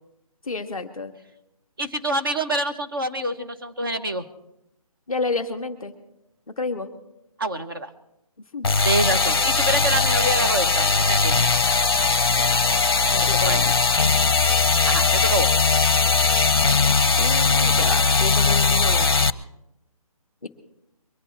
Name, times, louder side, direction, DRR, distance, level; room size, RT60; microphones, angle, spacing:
voice 1, 0.5-1.1 5.1-5.9 6.6-6.9 8.5-8.7 13.1-13.8 16.8-19.2 20.4-20.5, left 3 dB, ahead, -10 dB, 0.7 m, -30 dB
voice 2, 1.8-4.2 7.4-7.9 8.8-11.3 13.4-13.6 14.9-15.5, right 1 dB, 35° right, 6 dB, 1.2 m, -26 dB
sound 1, 8.6-19.3, left 4 dB, 40° left, 0.7 m, -19 dB
23.5 x 9.3 x 4.4 m, 0.83 s
hypercardioid pair, 180°, 19 cm